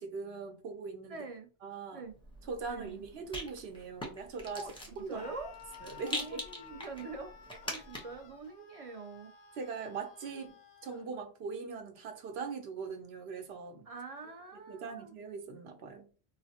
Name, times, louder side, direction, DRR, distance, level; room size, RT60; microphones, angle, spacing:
voice 1, 0.0-1.3 1.6-2.0 2.5-4.6 5.0-5.3 5.8-6.4 9.6-10.6 10.8-13.9 14.7-16.1, right 5 dB, 75° right, 0.9 m, -41 dB
voice 2, 1.1-1.5 1.9-2.1 2.6-3.0 4.5-5.5 6.0-7.4 7.6-9.3 13.9-15.1, right 4 dB, 50° right, 0.5 m, -44 dB
Rattle, 2.2-8.3, equal, 5° left, 0.7 m, -44 dB
Screaming, 5.1-11.1, left 7 dB, 50° left, 0.5 m, -54 dB
3.9 x 2.0 x 2.7 m
omnidirectional pair, 1.1 m